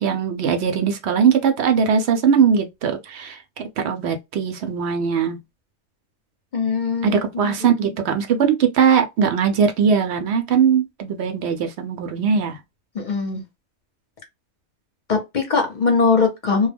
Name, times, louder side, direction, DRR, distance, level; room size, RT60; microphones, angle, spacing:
voice 1, 0.0-5.4 7.0-12.6, right 7 dB, 70° right, 0.8 m, -20 dB
voice 2, 6.5-7.5 12.9-13.4 15.1-16.7, left 4 dB, 50° left, 0.7 m, -21 dB
2.2 x 2.1 x 3.3 m
omnidirectional pair, 1.2 m